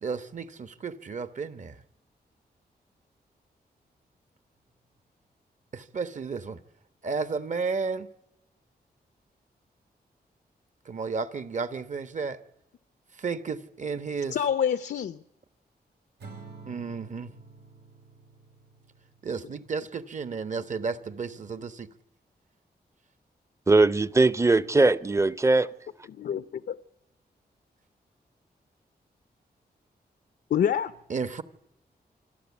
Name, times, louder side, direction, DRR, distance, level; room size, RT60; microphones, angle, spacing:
voice 1, 0.0-1.8 5.7-6.6 7.0-8.1 10.9-12.4 13.2-14.4 16.7-17.3 19.2-21.9 31.1-31.4, right 5 dB, 50° right, 1.1 m, -32 dB
voice 2, 14.3-15.2 26.1-26.8 30.5-30.9, left 8 dB, 80° left, 0.7 m, -27 dB
Acoustic guitar / Strum, 16.2-19.5, right 4 dB, 90° right, 2.9 m, -49 dB
voice 3, 23.7-25.7, right 3 dB, 15° right, 0.6 m, -20 dB
26.0 x 13.0 x 8.4 m
wide cardioid pair, 120°, 17 cm